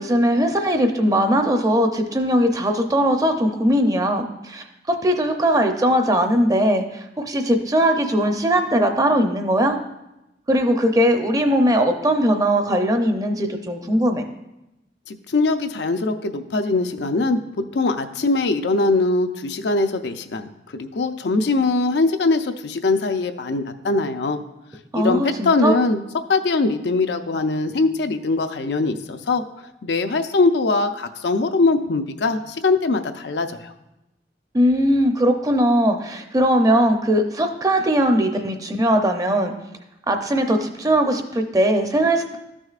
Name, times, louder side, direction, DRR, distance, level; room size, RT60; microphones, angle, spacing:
voice 1, 0.0-9.8 10.5-14.2 24.9-25.8 34.5-39.5 40.1-42.4, equal, 20° right, 5 dB, 0.6 m, -20 dB
voice 2, 15.1-17.4 17.7-24.4 24.9-26.0 26.3-29.4 29.8-33.7, left 3 dB, 75° left, 8 dB, 0.5 m, -21 dB
13.0 x 6.2 x 2.4 m, 0.92 s
head